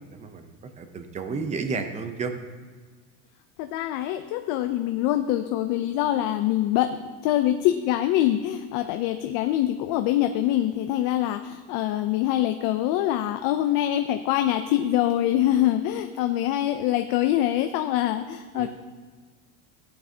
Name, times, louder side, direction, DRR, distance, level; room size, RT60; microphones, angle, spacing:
voice 1, 0.1-2.3 18.5-18.7, right 4 dB, 15° right, 7 dB, 0.6 m, -32 dB
voice 2, 3.6-6.9 7.2-18.7, left 13 dB, 50° left, 7 dB, 0.5 m, -24 dB
15.5 x 8.9 x 2.8 m, 1.5 s
cardioid pair, 155°, 43 cm